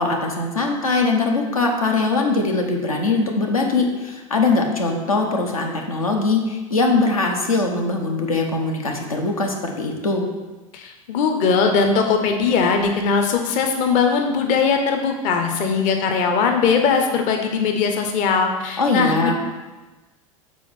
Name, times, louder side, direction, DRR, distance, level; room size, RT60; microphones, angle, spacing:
voice 1, 0.0-10.3 18.8-19.3, left 3 dB, 80° left, 1 dB, 1.0 m, -21 dB
voice 2, 10.7-19.3, left 5 dB, 45° left, 4 dB, 0.9 m, -20 dB
7.4 x 4.3 x 4.3 m, 1.2 s
figure-of-eight pair, 80°, 18 cm